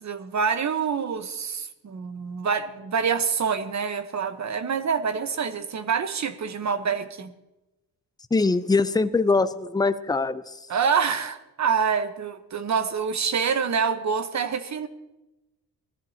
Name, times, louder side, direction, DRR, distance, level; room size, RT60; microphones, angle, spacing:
voice 1, 0.0-7.3 10.7-14.9, right 6 dB, 50° right, 10 dB, 1.2 m, -26 dB
voice 2, 8.3-10.5, left 3 dB, 10° left, 12 dB, 0.6 m, -22 dB
19.0 x 13.5 x 2.9 m, 0.98 s
cardioid pair, 80°, 36 cm